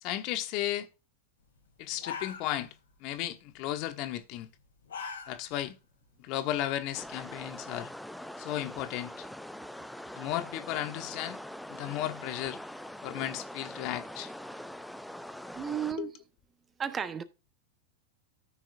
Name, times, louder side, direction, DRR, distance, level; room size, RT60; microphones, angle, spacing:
voice 1, 0.0-0.9 1.8-2.7 3.0-4.5 5.3-5.8 6.2-7.9 8.4-9.3 10.1-11.4 11.7-12.6 13.0-14.3 16.0-16.1, left 13 dB, 40° left, 1.2 m, -34 dB
sound 1, 1.6-1.7 1.9-2.9 3.2-3.6 4.6-5.7 6.1-6.2 6.7-7.7, left 6 dB, 65° left, 2.5 m, -42 dB
sound 2, 6.9-15.9, left 1 dB, ahead, 0.5 m, -43 dB
voice 2, 15.5-16.1 16.8-17.2, right 8 dB, 20° right, 1.0 m, -33 dB
13.5 x 6.1 x 2.6 m
figure-of-eight pair, 90°, 0 cm